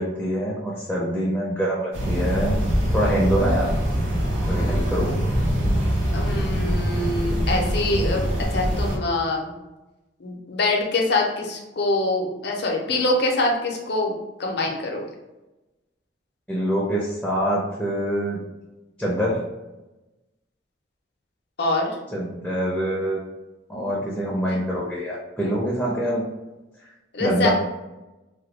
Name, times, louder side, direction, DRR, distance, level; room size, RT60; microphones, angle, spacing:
voice 1, 0.0-2.6 2.9-3.7 4.5-5.2 16.5-18.4 19.0-19.4 22.1-23.2 23.7-26.2 27.2-27.5, equal, 5° left, -5 dB, 0.5 m, -25 dB
sound 1, 1.9-9.0, equal, 80° right, 0.9 m, -23 dB
voice 2, 6.1-9.5 10.2-15.0 21.6-21.9 24.5-24.6 27.1-27.5, left 2 dB, 60° left, 0 dB, 0.6 m, -24 dB
3.0 x 2.2 x 3.2 m, 1.0 s
head